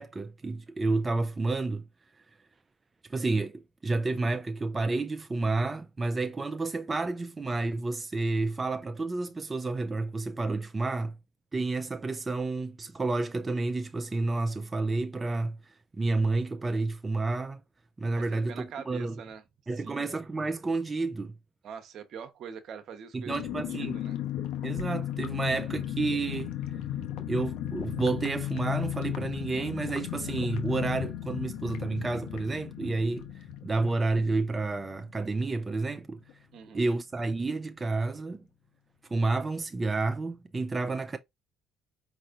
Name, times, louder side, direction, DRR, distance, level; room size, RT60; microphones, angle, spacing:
voice 1, 0.0-1.8 3.1-11.2 11.5-17.6 18.0-19.2 19.7-21.3 23.1-24.0 24.6-26.5 27.3-36.2 36.7-38.4 39.1-41.2, right 3 dB, 25° right, 0.5 m, -30 dB
voice 2, 18.1-19.4 19.7-20.1 21.6-23.4 23.7-24.2 36.5-36.8, right 7 dB, 65° right, 1.0 m, -44 dB
sound 1, 23.3-35.6 35.9-36.0 36.3-36.6, left 11 dB, 80° left, 1.1 m, -35 dB
5.2 x 3.0 x 2.5 m
supercardioid pair, 85°, 0 cm